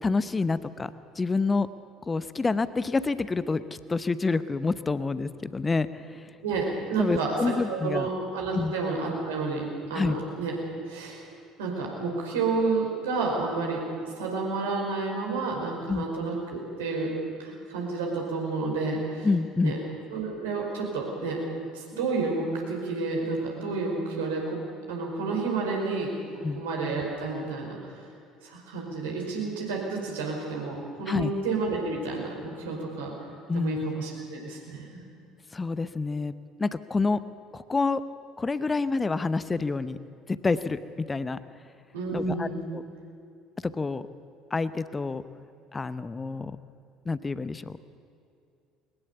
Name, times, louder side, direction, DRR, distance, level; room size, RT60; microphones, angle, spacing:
voice 1, 0.0-0.9 1.2-1.7 2.1-3.6 3.9-6.3 7.0-8.1 8.5-8.7 9.9-10.2 15.9-16.1 19.2-19.8 26.4-26.6 31.1-31.3 33.5-33.8 35.5-36.3 36.6-37.2 37.5-38.0 38.4-40.0 40.4-40.8 41.1-41.4 42.1-42.8 43.7-44.0 44.5-45.2 45.7-46.5 47.0-47.8, left 3 dB, 20° left, 14 dB, 0.8 m, -27 dB
voice 2, 6.4-7.3 7.7-9.6 9.9-10.6 10.9-11.3 11.6-13.8 14.1-17.1 17.4-19.3 19.6-19.8 20.1-21.4 21.7-24.6 24.9-26.1 26.5-27.8 28.4-33.1 33.5-35.0 41.9-42.6, right 3 dB, 70° right, 0 dB, 4.9 m, -30 dB
21.5 x 20.5 x 7.1 m, 2.5 s
figure-of-eight pair, 60°, 0 cm